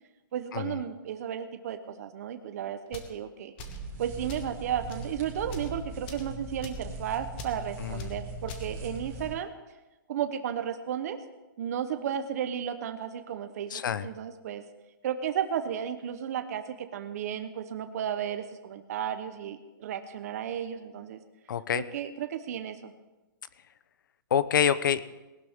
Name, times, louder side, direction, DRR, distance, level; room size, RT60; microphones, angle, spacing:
voice 1, 0.3-3.5 4.0-9.5 10.1-11.2 11.6-14.6 15.0-21.2 21.7-22.9, right 9 dB, 45° right, 8 dB, 0.9 m, -34 dB
sound 1, 2.9-3.1 3.6-3.9 4.3-4.5 4.9-5.1 5.4-5.7 6.1-6.3 6.6-6.8 7.4-7.6 8.0-8.1 8.5-8.7, left 5 dB, 30° left, 1.3 m, -44 dB
sound 2, 3.6-9.3, right 2 dB, 20° right, 2.3 m, -40 dB
voice 2, 13.7-14.1 21.5-21.8 24.3-25.0, left 8 dB, 60° left, 16 dB, 0.7 m, -26 dB
19.0 x 12.0 x 3.7 m, 1.1 s
hypercardioid pair, 170°, 12 cm